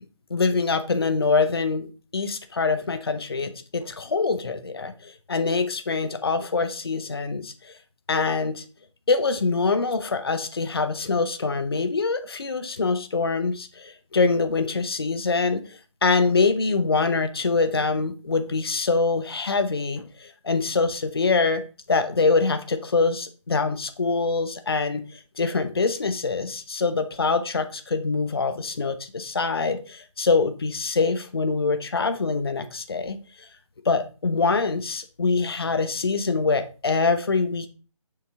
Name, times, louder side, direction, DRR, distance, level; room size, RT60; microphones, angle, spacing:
voice 1, 0.3-1.9 2.1-7.5 8.1-8.6 9.1-15.6 16.0-21.6 21.9-33.2 33.8-37.7, left 4 dB, 50° left, 9 dB, 0.7 m, -24 dB
7.0 x 5.5 x 3.4 m, 0.35 s
figure-of-eight pair, 155°, 17 cm